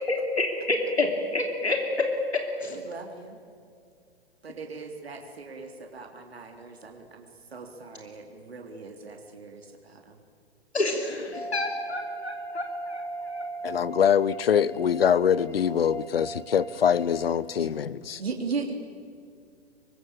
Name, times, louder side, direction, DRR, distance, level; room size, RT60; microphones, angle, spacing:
voice 1, 0.1-1.1 1.3-1.8 2.6-2.8 10.7-13.4, left 2 dB, 80° left, 3.3 m, -29 dB
voice 2, 2.7-3.4 4.4-10.2 17.6-17.7 18.2-18.7, right 4 dB, 70° right, 3.3 m, -38 dB
sound 1, 11.3-17.4, right 2 dB, 5° left, 1.7 m, -38 dB
voice 3, 13.6-18.2, left 8 dB, 65° left, 0.9 m, -24 dB
26.0 x 23.5 x 8.8 m
figure-of-eight pair, 115°, 32 cm